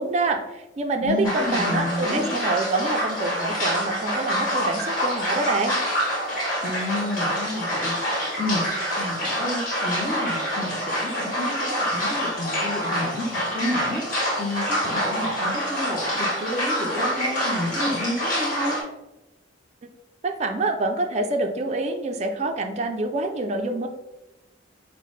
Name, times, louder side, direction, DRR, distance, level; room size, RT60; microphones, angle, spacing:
voice 1, 0.0-5.8 20.2-23.9, right 2 dB, 35° right, 5 dB, 0.3 m, -26 dB
voice 2, 1.0-2.3 6.6-8.6 9.0-18.8, left 1 dB, 5° left, -6 dB, 0.6 m, -30 dB
sound 1, 1.2-18.8, equal, 45° left, 1.2 m, -26 dB
5.6 x 2.0 x 3.1 m, 0.99 s
head